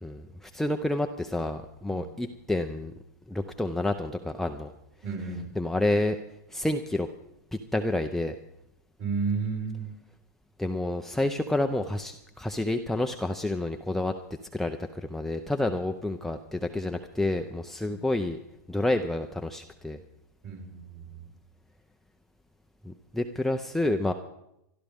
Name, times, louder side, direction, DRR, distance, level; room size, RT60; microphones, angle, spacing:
voice 1, 0.0-2.9 3.3-4.7 5.6-6.2 6.5-7.1 7.7-8.4 10.6-14.1 14.5-18.4 18.7-20.0 22.8-24.1, left 1 dB, 5° left, 4 dB, 0.6 m, -29 dB
voice 2, 5.0-5.5 9.0-9.9 17.9-18.0 20.4-21.3, right 5 dB, 40° right, 0 dB, 5.0 m, -33 dB
25.5 x 12.0 x 3.6 m, 0.82 s
hypercardioid pair, 125°, 10 cm